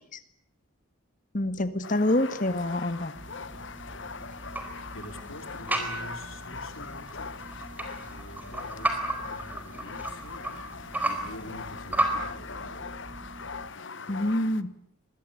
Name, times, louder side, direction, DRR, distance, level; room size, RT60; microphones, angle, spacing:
voice 1, 1.3-3.2 14.1-14.7, left 1 dB, 40° left, 12 dB, 1.8 m, -26 dB
sound 1, 1.8-14.6, left 5 dB, 65° left, 1.2 m, -41 dB
sound 2, 3.1-13.7, right 1 dB, 40° right, 1.8 m, -47 dB
sound 3, 3.3-12.2, right 1 dB, 10° right, 4.3 m, -34 dB
voice 2, 4.9-7.4 8.1-13.0 13.7-14.2, left 1 dB, 80° left, 7 dB, 4.3 m, -46 dB
28.0 x 22.5 x 8.6 m, 0.68 s
head